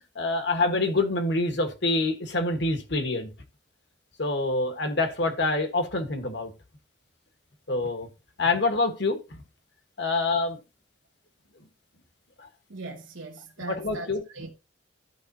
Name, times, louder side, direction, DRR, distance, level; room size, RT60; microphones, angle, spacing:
voice 1, 0.1-3.3 4.2-6.5 7.7-8.1 8.4-9.4 10.0-10.6 12.4-12.5 13.7-14.2, left 2 dB, 60° left, 1.4 m, -26 dB
voice 2, 12.7-14.5, right 2 dB, 90° right, 1.2 m, -39 dB
13.5 x 5.0 x 2.8 m
head